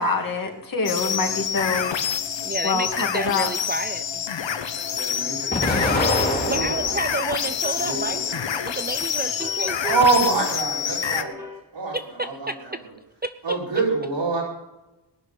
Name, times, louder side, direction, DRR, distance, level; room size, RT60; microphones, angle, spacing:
voice 1, 0.0-1.9 2.6-3.5 9.3-9.5, left 3 dB, 50° left, 2 dB, 2.5 m, -26 dB
sound 1, 0.9-11.2, left 8 dB, 80° left, 1.0 m, -27 dB
voice 2, 1.5-1.9 4.9-5.7 6.1-6.9 7.4-7.5 7.8-8.5 9.8-11.4 11.7-12.8 13.4-14.4, right 3 dB, 70° right, -4 dB, 4.8 m, -26 dB
voice 3, 2.4-4.3 6.5-8.3 8.6-10.0 11.9-12.8 13.2-13.6, right 2 dB, 25° right, 11 dB, 0.4 m, -31 dB
sound 2, 4.5-11.6, left 2 dB, 5° right, 4.4 m, -43 dB
Explosion, 5.5-7.2 7.7-8.6, left 1 dB, 20° left, 2.6 m, -25 dB
19.5 x 6.5 x 8.4 m, 1.0 s
wide cardioid pair, 125°, 44 cm